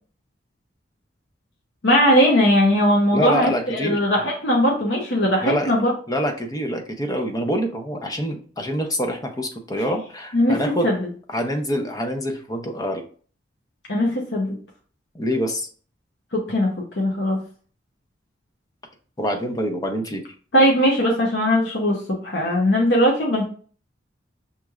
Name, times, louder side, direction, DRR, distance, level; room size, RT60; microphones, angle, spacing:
voice 1, 1.8-5.9 10.3-10.6 10.8-11.0 13.9-14.5 16.3-16.7 17.0-17.4 20.5-23.5, equal, 70° left, -1 dB, 0.8 m, -19 dB
voice 2, 3.1-4.0 5.4-5.8 6.1-10.9 11.3-13.0 15.1-15.7 19.2-20.2, equal, 20° left, 4 dB, 0.6 m, -25 dB
5.7 x 3.1 x 2.4 m, 0.43 s
head